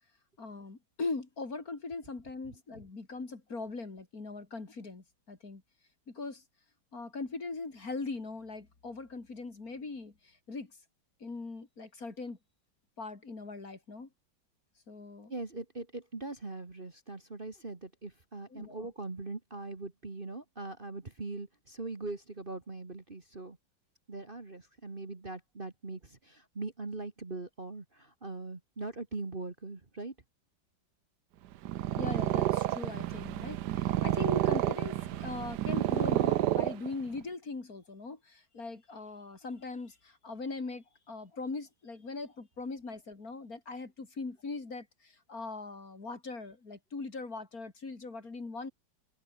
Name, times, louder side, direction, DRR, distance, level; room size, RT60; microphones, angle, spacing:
voice 1, 0.4-5.6 6.1-6.4 6.9-10.8 11.2-12.4 13.0-14.1 14.9-15.3 18.5-18.8 32.0-48.7, left 3 dB, 45° left, 3.6 m, -40 dB
voice 2, 15.3-23.6 24.1-30.2, right 3 dB, 25° right, 2.0 m, -41 dB
Purr, 31.5-37.2, right 13 dB, 65° right, 1.2 m, -30 dB
omnidirectional pair, 2.1 m